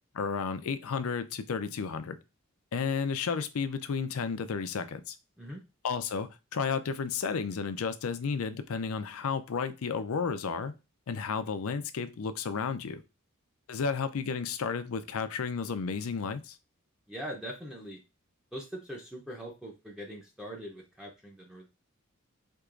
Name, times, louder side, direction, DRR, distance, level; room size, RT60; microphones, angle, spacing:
voice 1, 0.1-2.2 2.7-5.2 5.8-10.7 11.1-13.0 13.7-16.6, left 5 dB, 80° left, 0.5 m, -32 dB
voice 2, 17.1-18.0 18.5-21.7, equal, 5° right, 0.6 m, -42 dB
4.6 x 2.9 x 2.4 m
head